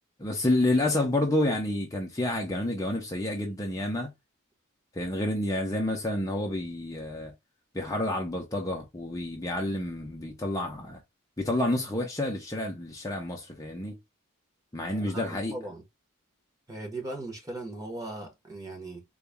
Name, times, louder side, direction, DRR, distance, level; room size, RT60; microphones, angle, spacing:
voice 1, 0.2-4.1 4.9-7.3 7.7-11.0 11.4-14.0 14.7-15.5, left 1 dB, 15° left, 0.6 m, -29 dB
voice 2, 14.8-15.8 16.7-19.0, right 2 dB, 15° right, 1.1 m, -39 dB
3.9 x 2.3 x 3.4 m
head